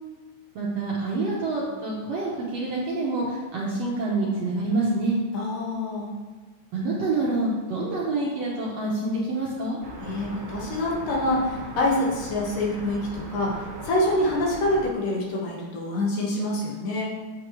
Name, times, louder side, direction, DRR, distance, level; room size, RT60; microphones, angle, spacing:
voice 1, 0.5-5.2 6.7-9.8, right 2 dB, 65° right, -5 dB, 1.7 m, -27 dB
voice 2, 5.3-6.1 10.0-17.1, left 1 dB, 75° left, -4 dB, 3.0 m, -26 dB
sound 1, 9.8-14.9, right 1 dB, 50° right, 1.3 m, -39 dB
8.0 x 7.6 x 3.0 m, 1.3 s
omnidirectional pair, 4.0 m